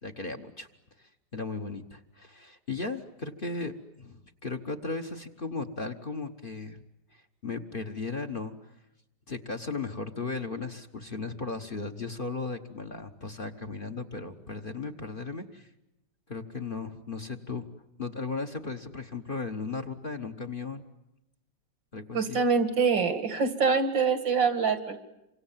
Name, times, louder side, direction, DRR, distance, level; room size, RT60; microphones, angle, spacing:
voice 1, 0.0-0.7 1.0-6.8 7.1-8.5 9.3-15.7 16.3-17.7 18.0-20.9 21.9-22.4, left 4 dB, 35° left, 9 dB, 1.2 m, -36 dB
voice 2, 22.1-25.0, right 5 dB, 85° right, 9 dB, 2.8 m, -25 dB
28.0 x 25.0 x 7.4 m, 0.90 s
omnidirectional pair, 2.0 m